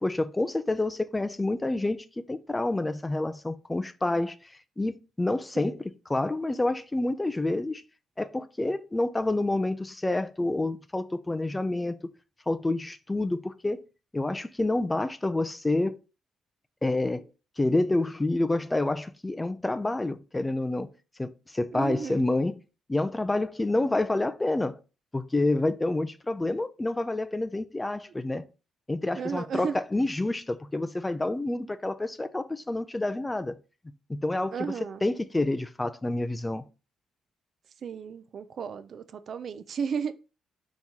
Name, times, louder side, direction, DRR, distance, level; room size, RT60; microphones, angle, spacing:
voice 1, 0.0-4.4 4.8-7.8 8.2-12.0 12.5-13.8 14.1-16.0 16.8-17.3 17.6-20.9 21.2-22.5 22.9-24.8 25.1-28.5 28.9-33.6 34.1-36.6, left 2 dB, 15° left, 0.4 m, -28 dB
voice 2, 21.7-22.3 29.1-29.8 34.5-35.0 37.8-40.3, right 6 dB, 55° right, 0.3 m, -34 dB
4.1 x 3.0 x 3.5 m
cardioid pair, 90°, 0 cm